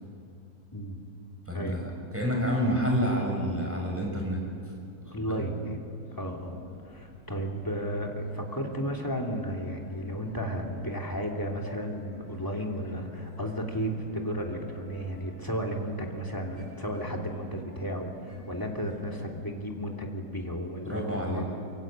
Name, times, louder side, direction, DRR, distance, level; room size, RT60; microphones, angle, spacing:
voice 1, 1.5-4.4 5.0-5.4 20.8-21.4, equal, 5° right, -1 dB, 6.0 m, -29 dB
voice 2, 5.1-5.8 6.1-21.4, equal, 10° left, 0 dB, 2.8 m, -33 dB
sound 1, 6.0-19.5, equal, 50° left, 7.3 m, -49 dB
25.5 x 23.5 x 8.9 m, 2.4 s
omnidirectional pair, 2.0 m